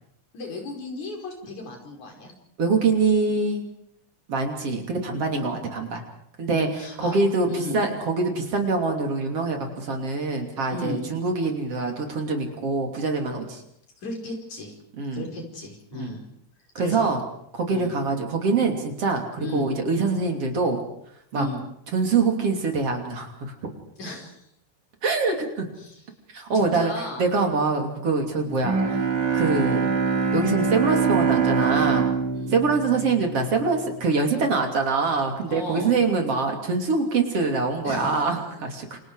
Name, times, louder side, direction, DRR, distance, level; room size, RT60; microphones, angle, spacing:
voice 1, 0.3-2.3 5.3-5.6 6.5-7.2 7.5-7.8 10.7-11.1 14.0-14.7 15.1-16.2 16.8-17.1 17.7-17.9 19.4-19.7 21.3-21.6 24.0-24.4 25.8-26.0 26.5-27.3 32.3-32.6 35.5-35.9 37.8-38.3, left 2 dB, 70° left, 1 dB, 6.3 m, -35 dB
voice 2, 2.6-3.7 4.3-6.0 6.4-6.7 7.0-13.6 15.0-15.2 15.9-16.2 16.8-17.2 17.5-20.8 21.3-21.5 21.9-23.8 25.0-25.7 26.3-26.9 27.2-29.1 29.3-30.0 30.3-32.1 32.5-39.0, right 4 dB, 50° right, 3 dB, 3.8 m, -24 dB
Bowed string instrument, 28.6-33.9, right 5 dB, 85° right, 4.3 m, -24 dB
28.0 x 26.0 x 4.9 m, 0.72 s
omnidirectional pair, 3.5 m